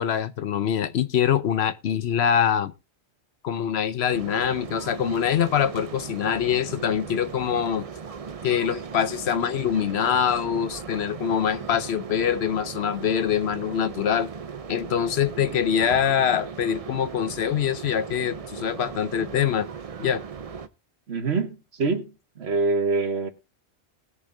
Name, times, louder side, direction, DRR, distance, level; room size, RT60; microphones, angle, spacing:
voice 1, 0.0-2.7 3.4-7.8 8.4-14.3 14.7-19.7 20.0-20.2, left 8 dB, 75° left, 1.0 m, -24 dB
sound 1, 4.1-20.7, right 6 dB, 40° right, 0.6 m, -38 dB
voice 2, 15.5-16.0 21.1-22.1 22.4-23.3, right 3 dB, 70° right, 1.5 m, -26 dB
19.5 x 6.9 x 2.6 m
omnidirectional pair, 1.1 m